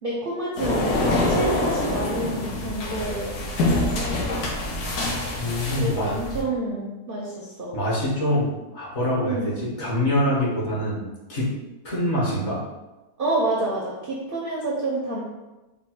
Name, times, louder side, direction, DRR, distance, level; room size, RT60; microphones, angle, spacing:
voice 1, 0.0-4.4 5.8-7.8 9.2-9.6 13.2-15.2, right 2 dB, 55° right, -4 dB, 0.6 m, -29 dB
sound 1, 0.6-6.4, left 2 dB, 85° left, 1.3 m, -25 dB
voice 2, 5.4-6.2 7.7-11.0 11.3-11.5 11.8-12.6, left 1 dB, 50° left, -6 dB, 1.4 m, -25 dB
4.3 x 2.1 x 4.3 m, 1.1 s
omnidirectional pair, 1.6 m